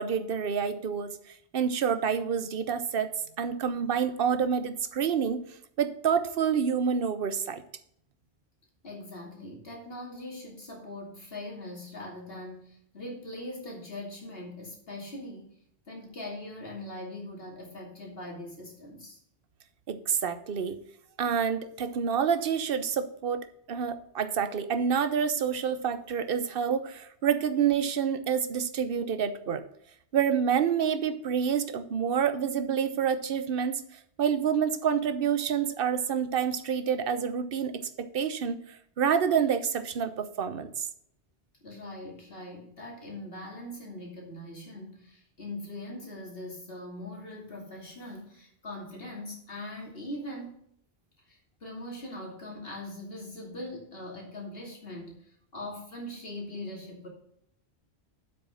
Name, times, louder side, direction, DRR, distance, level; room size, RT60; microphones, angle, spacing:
voice 1, 0.0-3.1 3.4-5.4 5.8-7.6 19.9-20.8 21.2-29.6 30.1-33.8 34.2-40.9, right 7 dB, 60° right, 10 dB, 1.0 m, -28 dB
voice 2, 8.8-15.5 15.9-19.2 41.6-50.6 51.3-57.1, left 1 dB, 55° left, -1 dB, 3.0 m, -41 dB
8.0 x 6.6 x 5.7 m, 0.69 s
omnidirectional pair, 1.1 m